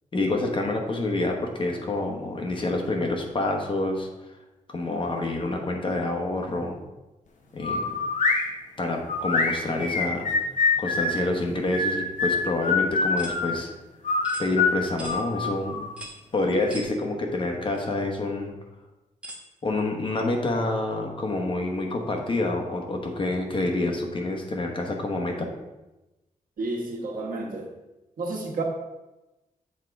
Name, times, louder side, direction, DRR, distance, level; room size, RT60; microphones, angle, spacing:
voice 1, 0.1-4.3 4.7-6.8 7.5-7.8 8.8-10.3 10.8-13.7 14.4-15.9 16.3-18.5 19.6-25.5, left 2 dB, 40° left, 2 dB, 1.0 m, -27 dB
sound 1, 7.6-8.4 9.1-11.2 11.7-13.5 14.0-15.9, left 4 dB, 65° left, 0.9 m, -25 dB
sound 2, 13.2-13.4 14.2-14.5 15.0-15.2 16.0-16.2 16.7-16.9 17.7-17.8 19.2-19.4, right 1 dB, 10° right, 1.0 m, -39 dB
voice 2, 26.6-27.7 28.2-28.6, right 2 dB, 85° right, 0 dB, 1.3 m, -31 dB
7.4 x 3.6 x 4.6 m, 1.0 s
wide cardioid pair, 170°, 14 cm